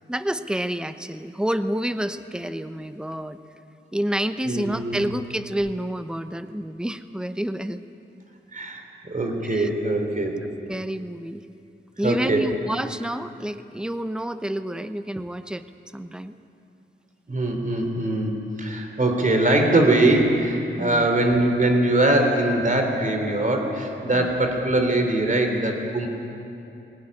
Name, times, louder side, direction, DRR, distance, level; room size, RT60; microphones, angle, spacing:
voice 1, 0.1-3.4 3.9-7.8 9.5-9.7 10.7-11.4 12.0-15.6 15.9-16.3 20.8-21.1 24.1-24.3, right 1 dB, 5° right, 10 dB, 0.8 m, -29 dB
voice 2, 4.4-5.0 8.5-10.4 12.0-12.5 17.3-26.1, right 1 dB, 40° right, 4 dB, 3.4 m, -22 dB
21.5 x 17.5 x 9.8 m, 2.8 s
wide cardioid pair, 95°, 21 cm